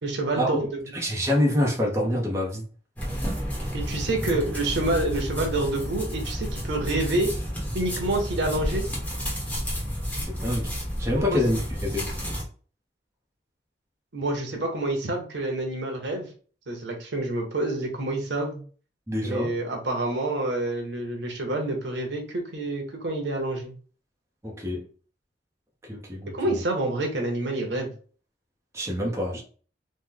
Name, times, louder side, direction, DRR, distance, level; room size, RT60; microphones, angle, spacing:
voice 1, 0.0-0.8 3.7-7.3 7.7-8.8 11.2-11.4 14.1-16.3 16.7-18.6 19.2-23.7 26.3-27.9, right 2 dB, 85° right, 0.9 m, -28 dB
voice 2, 0.9-2.6 10.3-10.7 11.0-12.1 19.1-19.5 24.4-24.9 25.9-26.6 28.7-29.4, left 1 dB, 15° right, 0.7 m, -26 dB
sound 1, 3.0-12.4, equal, 10° left, 0.9 m, -31 dB
3.1 x 2.1 x 3.7 m
head